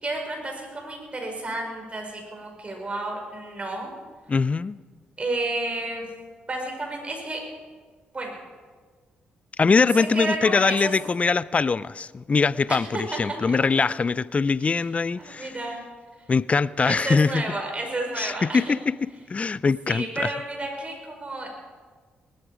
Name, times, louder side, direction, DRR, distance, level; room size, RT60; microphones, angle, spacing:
voice 1, 0.0-3.9 5.2-6.1 6.5-7.4 8.1-8.4 10.0-10.9 12.7-12.8 13.1-13.6 14.6-14.8 15.2-15.8 16.8-18.7 19.9-21.5, right 2 dB, 30° right, 5.5 m, -31 dB
voice 2, 4.3-4.8 9.6-15.5 16.3-17.4 18.2-18.9 19.3-20.3, left 4 dB, 35° left, 0.4 m, -22 dB
19.5 x 13.0 x 5.0 m
supercardioid pair, 60°, 4 cm